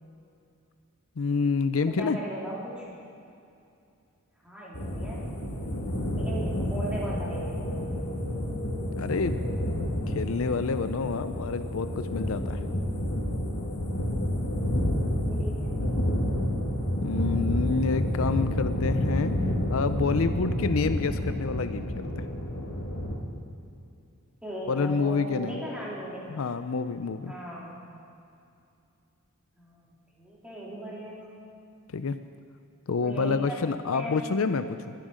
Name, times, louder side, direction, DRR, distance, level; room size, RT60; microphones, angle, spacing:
voice 1, 1.2-2.2 9.0-9.4 10.1-12.6 17.0-19.4 19.7-22.1 24.7-25.6 26.3-27.3 31.9-32.2 32.9-34.9, left 4 dB, 70° left, 11 dB, 0.5 m, -28 dB
voice 2, 1.9-2.9 4.4-5.3 6.2-7.9 14.5-15.8 24.4-26.4 27.3-27.7 29.6-31.3 33.0-34.2, equal, 5° right, -7 dB, 3.6 m, -38 dB
sound 1, 4.7-23.2, equal, 90° left, 2.5 m, -29 dB
20.5 x 11.5 x 5.0 m, 2.6 s
head